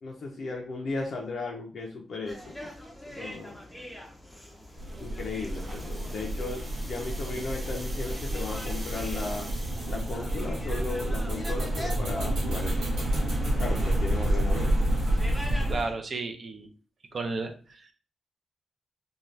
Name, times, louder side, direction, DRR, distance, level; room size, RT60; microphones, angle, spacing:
voice 1, 0.0-2.7 3.1-3.6 5.0-9.5 9.9-12.8 13.6-14.8, left 3 dB, 55° left, -1 dB, 0.5 m, -36 dB
sound 1, 2.3-15.9, equal, 5° left, 0.5 m, -44 dB
sound 2, 4.7-10.3, right 1 dB, 15° right, 1.2 m, -45 dB
sound 3, 4.8-15.8, right 1 dB, 80° right, 1.2 m, -29 dB
voice 2, 15.7-16.7 17.1-17.9, right 3 dB, 45° right, 5 dB, 0.5 m, -33 dB
2.7 x 2.3 x 3.1 m, 0.37 s
wide cardioid pair, 160°, 0 cm